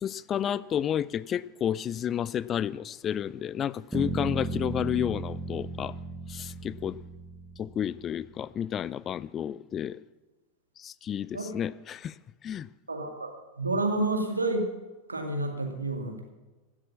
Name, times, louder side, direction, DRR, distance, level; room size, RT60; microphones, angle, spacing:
voice 1, 0.0-5.9 6.3-7.0 7.6-10.0 10.8-12.2 12.4-12.7, left 9 dB, 25° left, 0.3 m, -31 dB
sound 1, 3.9-8.0, right 2 dB, 5° right, 1.3 m, -35 dB
voice 2, 12.9-13.3 13.6-14.7 15.1-16.3, right 2 dB, 80° right, 2.0 m, -29 dB
16.0 x 7.4 x 7.2 m
figure-of-eight pair, 90°, 0 cm